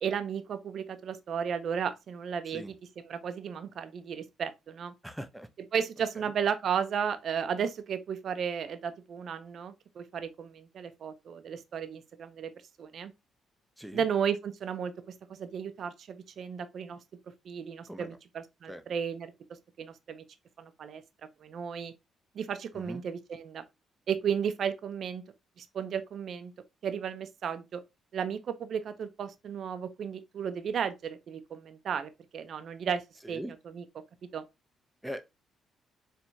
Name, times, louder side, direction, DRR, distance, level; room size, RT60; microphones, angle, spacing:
voice 1, 0.0-4.9 5.7-12.5 12.8-13.1 13.9-17.0 17.4-19.3 19.8-20.2 20.6-21.0 21.4-21.9 22.3-23.6 24.1-25.2 25.6-26.5 26.8-27.8 28.1-33.8 34.2-34.4, right 7 dB, 60° right, 0.6 m, -34 dB
voice 2, 5.0-5.5 6.1-6.2 13.8-14.0 17.9-18.2 18.7-18.8 22.7-23.0 33.2-33.5 35.0-35.2, equal, 5° right, 0.6 m, -41 dB
4.5 x 3.3 x 2.7 m
cardioid pair, 90°, 0 cm